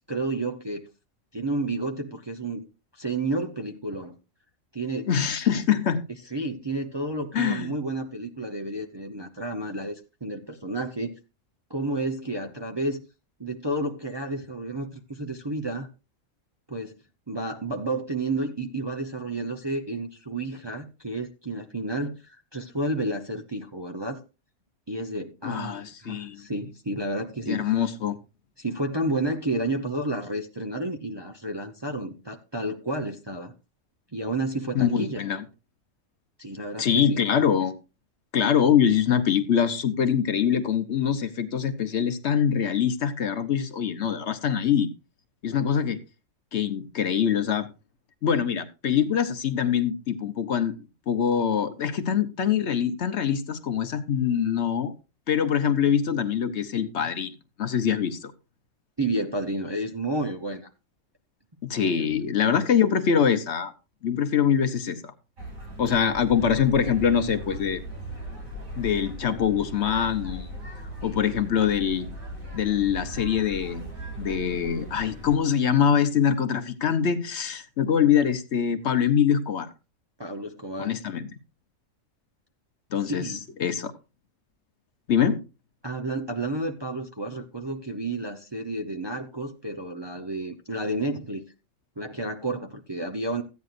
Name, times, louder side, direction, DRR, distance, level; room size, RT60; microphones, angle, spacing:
voice 1, 0.1-0.8 1.3-2.7 2.9-4.2 4.7-5.1 6.3-11.1 11.7-13.0 13.4-15.9 16.7-17.0 17.3-24.2 24.9-27.6 28.6-33.5 34.1-35.3 36.4-37.2 59.0-60.7 62.0-62.1 80.2-81.0 83.0-83.4 85.8-91.4 92.0-93.4, right 2 dB, 25° right, 0.7 m, -31 dB
voice 2, 5.1-6.0 7.3-7.7 25.4-26.5 27.5-28.2 34.7-35.4 36.8-37.7 38.3-44.9 45.4-46.0 46.5-47.7 48.2-50.7 51.1-54.9 55.3-58.3 61.6-63.7 64.0-65.1 65.8-67.8 68.8-70.5 71.0-72.1 72.5-73.8 74.2-79.7 80.8-81.2 82.9-83.3 83.6-83.9 85.1-85.4, left 8 dB, 60° left, 1.1 m, -24 dB
sound 1, 65.4-75.4, right 1 dB, 85° right, 2.9 m, -38 dB
14.5 x 9.4 x 2.5 m
omnidirectional pair, 1.4 m